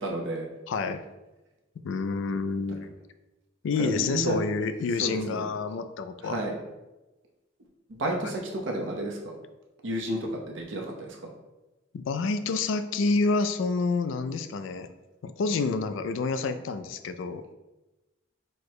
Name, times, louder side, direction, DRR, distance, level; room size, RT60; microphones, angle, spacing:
voice 1, 0.0-0.5 3.7-4.4 5.0-5.5 6.2-6.5 7.9-9.3 9.8-11.2, right 1 dB, 70° right, 0 dB, 0.8 m, -31 dB
voice 2, 0.7-1.0 1.8-2.9 3.6-6.4 11.9-14.9 15.2-17.5, left 4 dB, 70° left, 10 dB, 0.3 m, -28 dB
4.4 x 2.1 x 4.6 m, 1.1 s
head